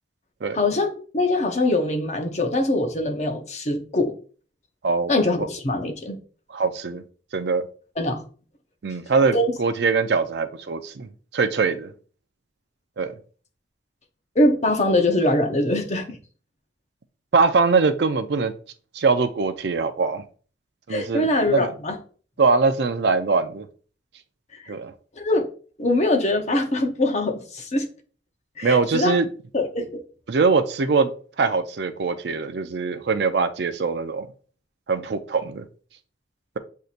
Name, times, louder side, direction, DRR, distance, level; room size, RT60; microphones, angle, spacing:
voice 1, 0.5-4.1 5.1-6.2 8.0-8.2 9.3-9.5 14.4-16.2 20.9-22.0 24.5-24.7 25.1-25.5 25.8-27.9 28.6-29.1 29.5-30.0, left 2 dB, 40° left, 0.8 m, -23 dB
voice 2, 6.5-7.0 7.3-7.6 8.8-11.9 13.0-13.1 17.3-18.5 18.9-20.2 20.9-21.7 22.4-23.7 24.7-24.9 28.6-29.3 30.3-31.1 31.4-34.3 34.9-35.6, right 4 dB, 60° right, 0.4 m, -22 dB
7.7 x 2.7 x 2.5 m
head